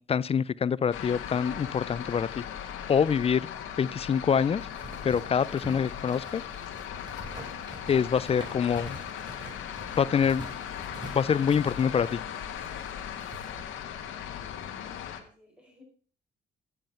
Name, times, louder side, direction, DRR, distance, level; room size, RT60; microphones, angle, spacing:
voice 1, 0.0-2.4 2.9-3.5 3.8-4.7 5.0-6.4 7.9-9.0 10.0-10.5 11.1-12.2, left 7 dB, 30° left, 0.4 m, -25 dB
sound 1, 0.9-15.2, left 9 dB, 85° left, 1.4 m, -38 dB
sound 2, 4.6-13.6, right 1 dB, 25° right, 3.9 m, -46 dB
voice 2, 14.8-15.8, left 2 dB, 5° right, 5.3 m, -59 dB
9.0 x 7.8 x 5.5 m
cardioid pair, 90°, 20 cm